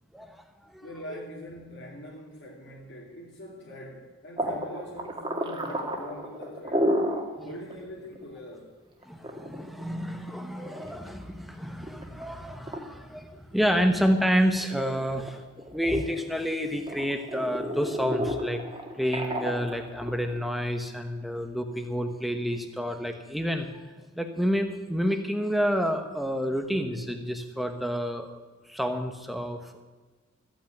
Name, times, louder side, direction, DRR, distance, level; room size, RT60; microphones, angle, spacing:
voice 1, 0.1-1.2 7.4-7.5 9.1-15.4 15.7-18.6 19.0-23.7 24.2-28.4 28.7-29.8, equal, ahead, 5 dB, 1.1 m, -29 dB
voice 2, 0.8-6.9 7.4-8.7, left 1 dB, 55° left, -4 dB, 2.4 m, -43 dB
sound 1, 4.4-7.3 7.7-7.8 8.2-8.3 9.0-11.3 11.8-12.2 12.7-12.8 13.3-14.3 14.6-16.5 16.9-20.4, equal, 25° right, 2.0 m, -31 dB
14.5 x 9.0 x 9.1 m, 1.3 s
head